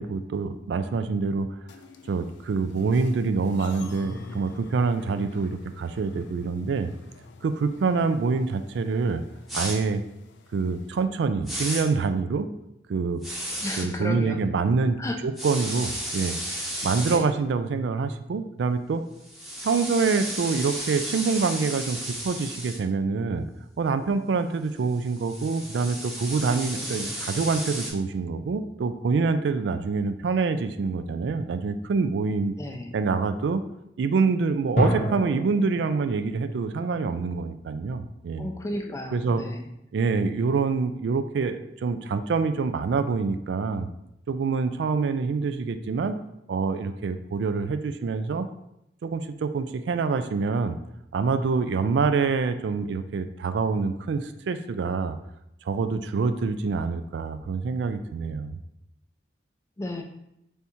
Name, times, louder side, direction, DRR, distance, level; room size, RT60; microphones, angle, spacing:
voice 1, 0.0-1.6 2.1-6.9 7.4-9.2 9.5-10.0 10.5-12.5 12.9-13.2 13.8-16.4 16.8-19.0 19.6-23.5 23.8-32.6 32.9-33.6 34.0-38.5 39.1-39.4 39.9-43.9 44.3-46.2 46.5-48.5 49.0-50.8 51.1-55.2 55.7-58.6, right 4 dB, 85° right, 10 dB, 0.3 m, -26 dB
sound 1, 1.7-11.1, left 3 dB, 90° left, 0.4 m, -47 dB
sound 2, 9.5-9.8 11.5-11.8 13.2-13.8 15.4-17.2 19.2-22.8 24.9-27.9, equal, ahead, 0.7 m, -33 dB
voice 2, 13.6-14.4 15.0-15.2 17.1-17.3 32.6-33.0 38.4-39.6 59.8-60.0, left 1 dB, 15° left, 4 dB, 0.3 m, -33 dB
sound 3, 26.6-29.6 30.2-30.5 34.7-39.1, left 1 dB, 40° left, 0.7 m, -34 dB
3.5 x 2.7 x 4.3 m, 0.81 s
head